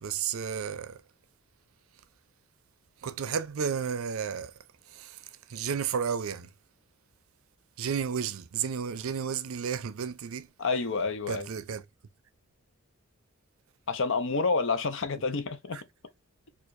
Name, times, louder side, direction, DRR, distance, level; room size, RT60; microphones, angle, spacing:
voice 1, 0.0-1.0 3.0-4.5 5.0-5.1 5.5-6.5 7.8-10.5 11.3-11.8, right 7 dB, 80° right, 0.5 m, -32 dB
voice 2, 10.6-11.5 13.9-15.8, left 4 dB, 65° left, 0.6 m, -29 dB
4.5 x 2.4 x 2.4 m
head